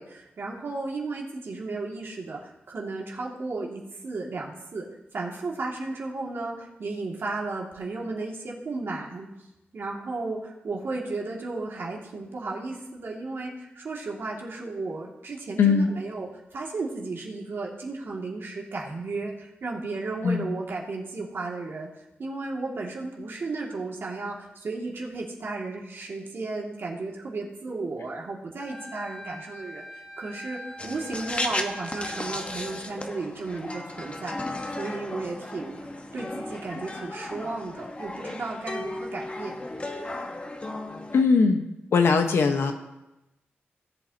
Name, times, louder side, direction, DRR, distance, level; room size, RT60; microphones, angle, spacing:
voice 1, 0.0-4.8 5.1-9.3 9.7-35.8 36.1-39.5, right 3 dB, 65° right, -2 dB, 2.2 m, -34 dB
voice 2, 15.6-15.9 20.2-20.5 41.1-42.7, left 5 dB, 85° left, 5 dB, 1.0 m, -21 dB
Wind instrument woodwind instrument, 28.6-32.9, left 1 dB, 10° left, 2.0 m, -42 dB
sound 1, 30.8-41.2, left 2 dB, 30° left, 1.1 m, -35 dB
17.5 x 8.1 x 2.8 m, 0.96 s
wide cardioid pair, 90°, 4 cm